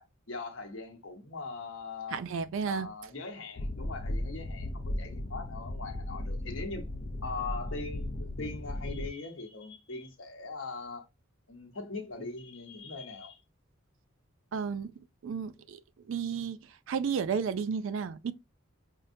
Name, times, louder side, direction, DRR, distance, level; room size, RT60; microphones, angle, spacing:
voice 1, 0.0-2.2 2.6-6.9 7.2-11.1 11.5-13.4, left 3 dB, 65° left, 1.0 m, -41 dB
voice 2, 2.1-2.9 14.5-14.9 15.2-15.8 16.1-18.3, right 6 dB, 70° right, 0.4 m, -32 dB
sound 1, 3.6-9.1, left 1 dB, 45° left, 0.4 m, -36 dB
5.2 x 2.1 x 2.6 m
head